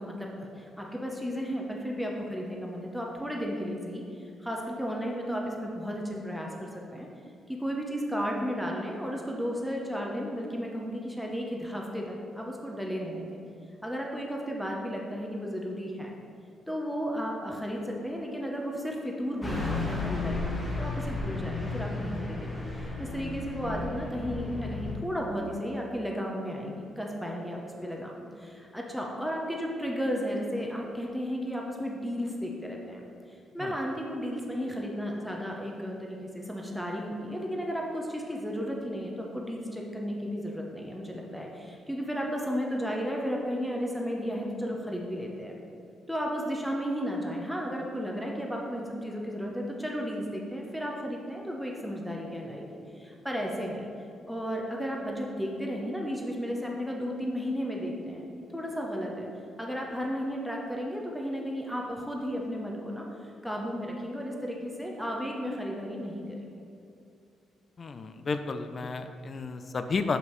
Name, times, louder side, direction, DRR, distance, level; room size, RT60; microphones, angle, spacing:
voice 1, 0.0-7.1 7.5-13.4 13.8-16.2 16.7-33.0 33.3-45.6 46.1-52.7 52.9-53.9 54.3-58.2 58.5-59.3 59.6-66.4, equal, ahead, -1 dB, 0.7 m, -34 dB
Car passing by / Truck, 19.4-25.0, left 3 dB, 20° left, 1.1 m, -33 dB
voice 2, 67.8-70.2, left 4 dB, 40° left, 9 dB, 0.4 m, -32 dB
6.1 x 5.4 x 3.1 m, 2.5 s
cardioid pair, 90°, 0 cm